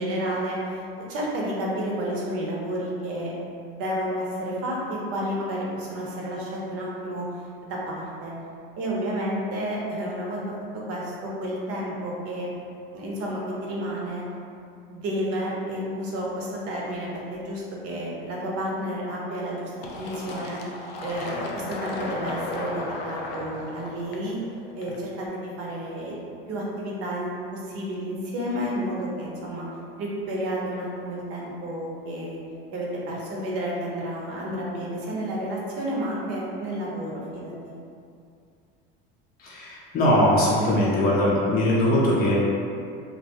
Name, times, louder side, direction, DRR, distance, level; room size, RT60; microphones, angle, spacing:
voice 1, 0.0-3.3 3.6-7.3 7.6-8.3 8.8-10.4 10.9-12.5 12.9-14.2 14.9-19.7 20.0-20.6 21.0-24.4 24.8-26.2 26.5-29.7 30.0-32.4 32.7-37.7, equal, 55° right, -4 dB, 0.8 m, -31 dB
Fill (with liquid), 19.8-25.2, left 2 dB, 90° left, 0.5 m, -35 dB
voice 2, 39.4-42.5, left 1 dB, 30° left, -6 dB, 0.5 m, -21 dB
2.6 x 2.2 x 2.8 m, 2.4 s
hypercardioid pair, 90°, 29 cm